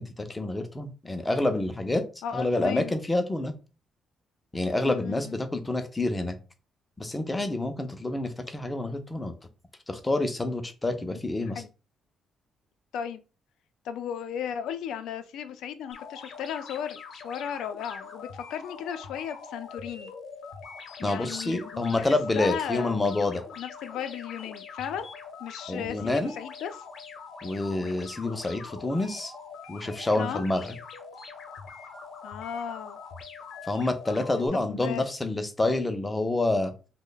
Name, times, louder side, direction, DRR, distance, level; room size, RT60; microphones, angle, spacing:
voice 1, 0.0-2.0 2.3-3.5 4.5-6.4 7.0-9.3 9.9-11.6 21.0-23.4 25.7-26.3 27.4-29.3 29.7-30.7 33.7-36.7, left 2 dB, 10° left, 7 dB, 0.4 m, -28 dB
voice 2, 2.2-2.9 4.8-5.4 11.0-11.7 12.9-13.2 13.8-20.1 21.0-23.1 23.6-25.1 25.4-26.8 30.2-30.4 32.2-33.0 34.4-35.1, left 8 dB, 85° left, 10 dB, 0.4 m, -35 dB
sound 1, 15.9-34.5, left 5 dB, 55° left, 0.7 m, -44 dB
3.1 x 2.1 x 3.8 m, 0.33 s
cardioid pair, 165°, 0 cm